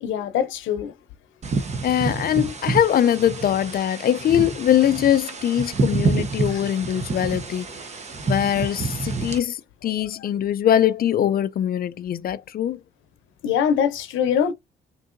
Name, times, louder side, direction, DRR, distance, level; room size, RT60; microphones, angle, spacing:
voice 1, 0.0-0.9 6.5-6.6 13.4-14.5, left 8 dB, 85° left, 0.7 m, -23 dB
sound 1, 1.4-9.4, right 3 dB, 35° right, 0.7 m, -28 dB
voice 2, 1.8-7.7 8.2-12.8, left 10 dB, 50° left, 0.4 m, -22 dB
3.7 x 2.6 x 2.5 m
cardioid pair, 90°, 20 cm